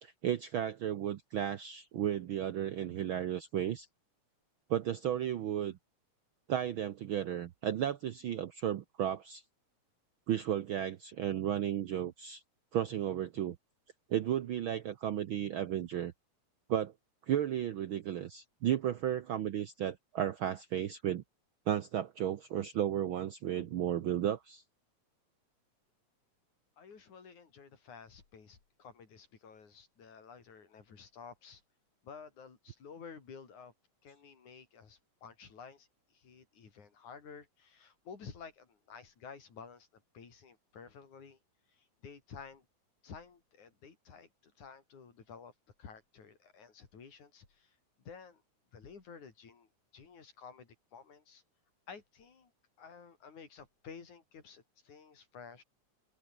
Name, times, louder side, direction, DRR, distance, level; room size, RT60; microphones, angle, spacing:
voice 1, 0.0-3.9 4.7-5.8 6.5-9.4 10.3-12.4 12.7-13.6 14.1-16.1 16.7-16.9 17.3-21.2 21.7-24.6, right 10 dB, 70° right, 1.2 m, -34 dB
voice 2, 26.8-31.6 32.0-33.7 34.0-39.9 40.1-41.4 41.7-42.6 43.0-45.5 45.8-47.8 48.0-48.4 48.7-51.4 51.9-52.5 52.8-55.6, left 6 dB, 80° left, 5.3 m, -52 dB
omnidirectional pair, 3.3 m